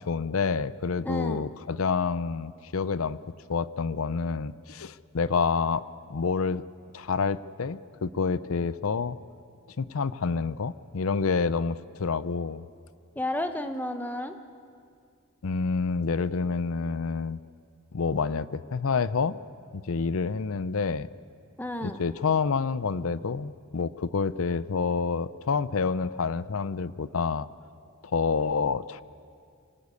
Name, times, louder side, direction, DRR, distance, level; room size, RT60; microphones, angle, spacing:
voice 1, 0.0-3.2 3.5-5.8 6.1-6.6 6.9-9.2 9.8-12.6 15.4-17.4 17.9-19.4 19.7-21.1 21.8-27.5 28.0-29.0, left 5 dB, 75° left, 16 dB, 0.6 m, -28 dB
voice 2, 1.0-1.5 13.2-14.3 21.6-22.0, left 1 dB, 10° left, 7 dB, 1.0 m, -32 dB
25.5 x 18.0 x 8.4 m, 2.3 s
head